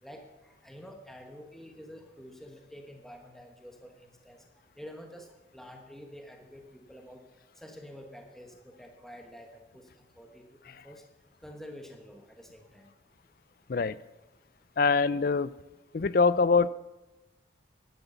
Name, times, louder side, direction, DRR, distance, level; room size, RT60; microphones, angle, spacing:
voice 1, 0.0-4.4 4.8-7.2 7.6-11.0 11.4-12.9, equal, ahead, 3 dB, 1.2 m, -48 dB
voice 2, 14.8-15.5 15.9-16.7, left 4 dB, 50° left, 18 dB, 0.4 m, -24 dB
11.0 x 10.5 x 7.0 m, 1.1 s
head